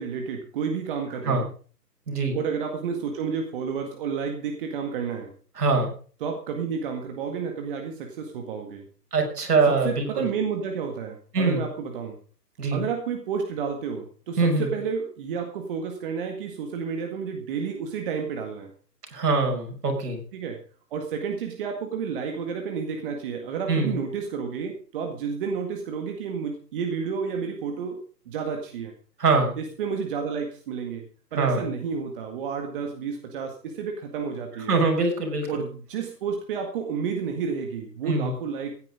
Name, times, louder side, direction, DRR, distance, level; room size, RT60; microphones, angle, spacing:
voice 1, 0.0-1.5 2.3-5.3 6.2-8.9 9.6-12.2 12.7-18.7 20.3-20.6 20.9-28.9 29.6-31.0 31.3-34.8 35.5-38.7, right 6 dB, 30° right, 3 dB, 1.9 m, -31 dB
voice 2, 2.1-2.4 5.6-5.9 9.1-10.2 11.3-11.6 12.6-12.8 14.4-14.7 19.1-20.2 23.7-24.0 29.2-29.6 31.3-31.7 34.7-35.6 38.0-38.3, right 3 dB, 65° right, 2 dB, 6.1 m, -23 dB
16.0 x 9.6 x 5.2 m, 0.43 s
hypercardioid pair, 155°, 49 cm